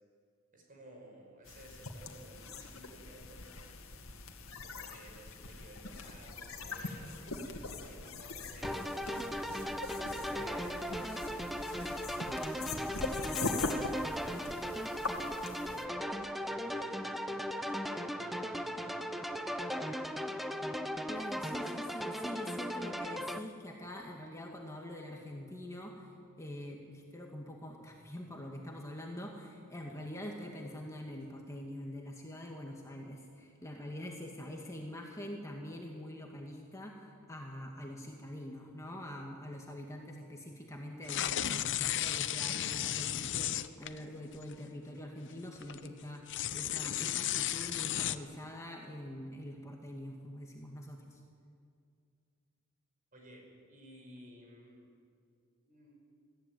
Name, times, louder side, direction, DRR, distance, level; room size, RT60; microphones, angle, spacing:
voice 1, 0.5-3.9 4.6-8.8 10.1-15.0 15.4-20.5 53.1-54.9 55.7-56.0, right 1 dB, 40° right, 0 dB, 5.3 m, -55 dB
sound 1, 1.5-15.9, left 3 dB, 90° left, 2.0 m, -41 dB
sound 2, 8.6-23.4, equal, ahead, 0.7 m, -37 dB
voice 2, 21.1-26.1 26.4-51.2, left 1 dB, 15° left, 0 dB, 2.0 m, -45 dB
sound 3, 41.0-44.0 44.3-44.5 45.4-45.9 46.3-48.2, left 11 dB, 60° left, 0.7 m, -34 dB
21.5 x 14.5 x 9.2 m, 2.3 s
head